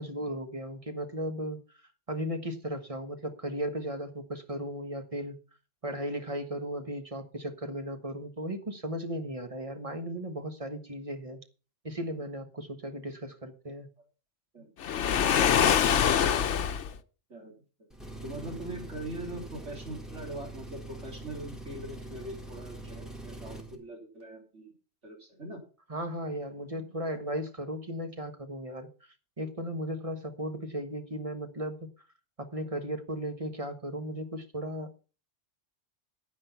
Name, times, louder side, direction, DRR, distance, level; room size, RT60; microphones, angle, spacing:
voice 1, 0.0-1.8 2.1-5.4 5.8-11.4 11.8-13.9 25.9-28.9 29.4-31.8 32.4-35.0, equal, 30° right, 7 dB, 1.4 m, -36 dB
Waves surf, 14.8-16.9, left 8 dB, 85° left, 1.1 m, -24 dB
voice 2, 17.3-17.9 18.2-24.7 25.0-25.6, right 1 dB, 85° right, 1 dB, 3.9 m, -42 dB
Engine, 17.9-23.7, right 2 dB, ahead, 2.1 m, -43 dB
9.8 x 9.7 x 5.7 m, 0.35 s
omnidirectional pair, 1.2 m